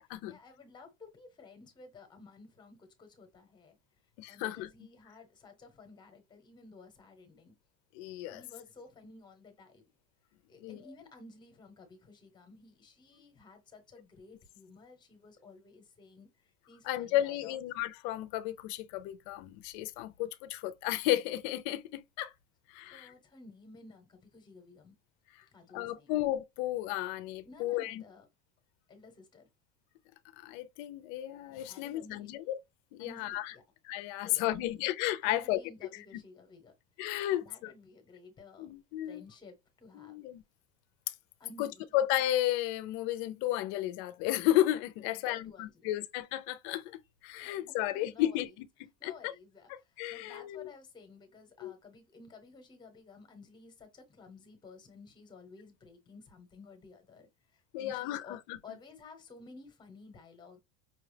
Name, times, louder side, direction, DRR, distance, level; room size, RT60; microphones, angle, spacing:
voice 1, 0.3-3.8 4.3-7.5 8.3-9.9 10.5-17.6 22.8-24.9 25.5-26.2 27.4-28.3 28.9-29.5 31.7-32.3 33.0-33.6 34.2-34.9 35.2-36.7 37.3-38.7 39.1-40.2 41.4-41.8 45.0-46.0 47.4-48.4 49.0-60.6, left 3 dB, 10° left, 0.9 m, -54 dB
voice 2, 4.2-4.7 7.9-8.4 10.6-10.8 16.8-22.3 22.7-23.1 25.3-25.4 25.7-28.0 30.4-32.6 32.9-33.5 33.8-35.6 36.1-36.2 37.0-37.7 38.6-39.2 39.9-40.4 41.1-41.2 41.6-49.3 49.7-50.7 51.6-51.7 57.7-58.6, left 14 dB, 45° left, 0.5 m, -33 dB
5.6 x 2.3 x 3.2 m
cardioid pair, 175°, 36 cm